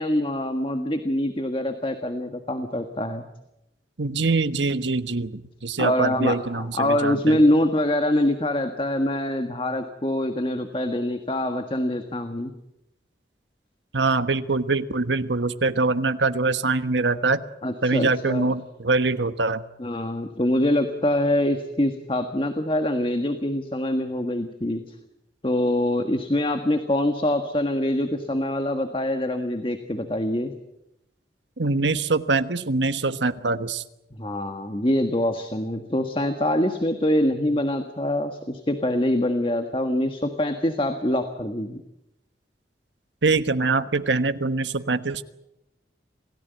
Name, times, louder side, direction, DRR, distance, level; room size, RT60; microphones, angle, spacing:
voice 1, 0.0-3.3 5.8-12.5 17.6-18.5 19.8-24.9 25.4-30.5 34.2-41.8, left 1 dB, 30° left, 7 dB, 1.6 m, -24 dB
voice 2, 4.0-7.4 13.9-17.4 17.8-19.6 31.6-33.8 43.2-45.2, right 3 dB, 90° right, 11 dB, 1.3 m, -24 dB
28.0 x 17.0 x 9.3 m, 0.90 s
head